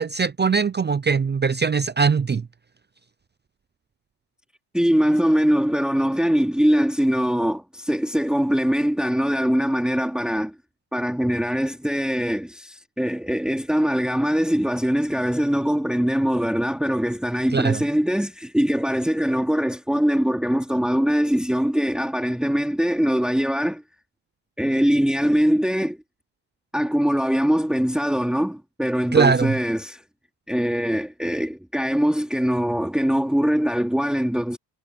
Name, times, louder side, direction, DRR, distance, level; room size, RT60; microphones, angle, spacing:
voice 1, 0.0-2.4 17.5-17.8 29.1-29.5, right 5 dB, 20° right, 0.7 m, -21 dB
voice 2, 4.7-10.5 10.9-23.8 24.6-26.0 26.7-30.0 30.5-34.6, equal, ahead, 2.9 m, -22 dB
cardioid pair, 100°, 47 cm